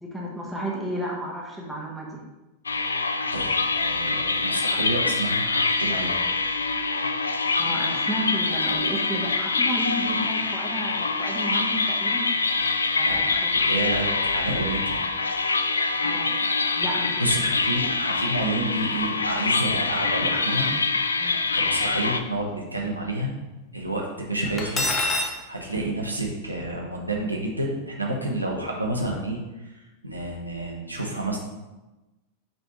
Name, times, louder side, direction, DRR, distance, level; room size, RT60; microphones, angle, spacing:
voice 1, 0.0-2.2 7.6-12.3 12.9-13.6 16.0-16.4 16.8-17.3 21.2-21.5, right 1 dB, ahead, -4 dB, 1.2 m, -32 dB
sound 1, 2.7-22.2, left 3 dB, 75° left, 0.3 m, -25 dB
voice 2, 3.3-6.1 13.0-13.3 13.7-15.0 17.2-20.8 21.5-23.3 23.7-25.0 25.5-31.4, right 1 dB, 85° right, -2 dB, 1.1 m, -29 dB
Cutlery silverware, 24.6-25.4, left 2 dB, 20° left, 0.7 m, -25 dB
8.8 x 3.3 x 3.2 m, 1.1 s
figure-of-eight pair, 90°, 0 cm